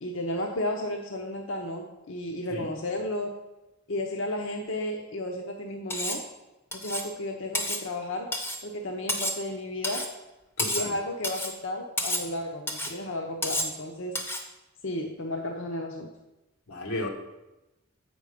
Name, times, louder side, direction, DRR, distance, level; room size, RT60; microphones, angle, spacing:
voice 1, 0.0-3.3 3.9-6.2 6.7-8.3 8.6-10.0 10.7-14.1 14.8-16.1, left 1 dB, 60° left, 2 dB, 0.7 m, -33 dB
Cutlery silverware, 5.9-6.3 6.7-7.1 7.5-7.8 8.3-8.6 9.1-9.4 9.8-10.1 10.6-10.9 11.2-11.6 12.0-12.3 12.7-13.0 13.4-13.8 14.2-14.5, left 1 dB, 10° left, 0.6 m, -30 dB
voice 2, 10.6-10.9 16.7-17.1, left 2 dB, 90° left, 1 dB, 1.3 m, -33 dB
7.6 x 5.2 x 5.0 m, 1.0 s
head